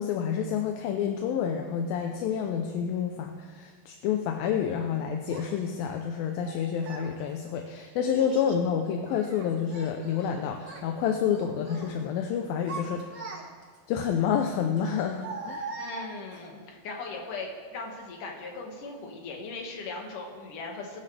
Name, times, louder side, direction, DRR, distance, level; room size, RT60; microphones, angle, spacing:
voice 1, 0.0-13.2 13.9-15.7, left 8 dB, 80° left, 4 dB, 2.5 m, -29 dB
Child speech kid speaking, 5.3-5.4 6.4-7.1 8.0-8.6 9.1-10.3 10.6-10.9 11.3-11.9 12.4-13.8 14.8-16.5, right 3 dB, 45° right, 1.5 m, -41 dB
voice 2, 15.8-21.0, left 3 dB, 60° left, 0 dB, 3.2 m, -39 dB
22.0 x 10.0 x 3.4 m, 1.5 s
omnidirectional pair, 4.2 m